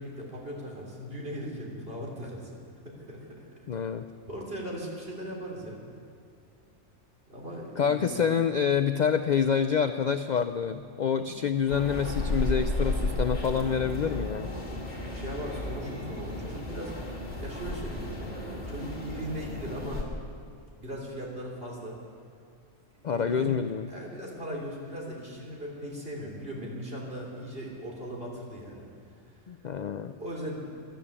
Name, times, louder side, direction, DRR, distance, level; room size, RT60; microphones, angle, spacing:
voice 1, 0.0-3.6 4.3-5.8 7.3-8.2 11.0-11.3 15.1-17.0 17.4-20.1 20.8-22.0 23.0-23.6 23.9-28.9 30.2-30.7, equal, 45° right, -2 dB, 3.5 m, -38 dB
voice 2, 3.7-4.0 7.8-14.5 23.0-23.9 29.5-30.1, left 7 dB, 60° left, 9 dB, 0.4 m, -27 dB
sound 1, 11.7-20.0, left 1 dB, 35° left, 2.6 m, -33 dB
14.0 x 11.5 x 8.7 m, 2.4 s
omnidirectional pair, 1.3 m